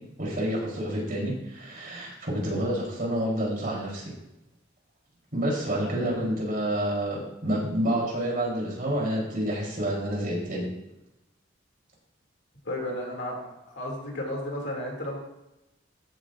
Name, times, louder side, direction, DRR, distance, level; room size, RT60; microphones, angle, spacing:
voice 1, 0.2-4.0 5.3-10.7, right 1 dB, 45° right, -4 dB, 3.8 m, -28 dB
voice 2, 12.6-15.2, left 1 dB, 60° left, -1 dB, 2.6 m, -33 dB
14.0 x 8.2 x 2.6 m, 0.91 s
head